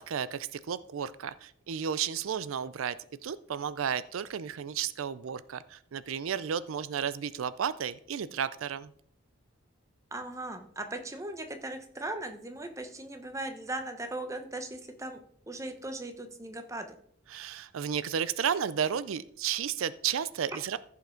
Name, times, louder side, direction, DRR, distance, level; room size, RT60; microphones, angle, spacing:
voice 1, 0.0-3.0 3.2-8.9 17.3-20.8, right 8 dB, 85° right, 16 dB, 0.4 m, -33 dB
voice 2, 10.1-15.2 15.5-16.9, right 2 dB, 15° right, 7 dB, 0.9 m, -38 dB
14.5 x 5.8 x 3.8 m, 0.63 s
head